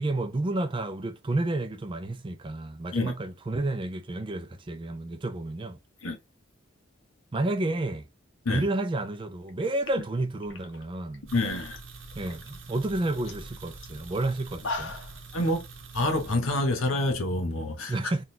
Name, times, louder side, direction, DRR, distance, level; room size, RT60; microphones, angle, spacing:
voice 1, 0.0-5.8 7.3-8.0 8.5-11.2 12.2-15.0 17.9-18.2, right 2 dB, 25° right, 0.4 m, -30 dB
sound 1, 9.5-9.6 9.8-11.8 12.1-12.6 12.9-13.0 13.3-13.5 13.8-13.9 14.4-15.2, left 3 dB, 60° left, 0.8 m, -38 dB
voice 2, 11.3-11.8 15.3-15.6 15.9-18.0, left 1 dB, 90° left, 1.0 m, -27 dB
sound 2, 11.3-16.4, right 3 dB, 70° right, 0.9 m, -45 dB
3.8 x 2.4 x 2.6 m
head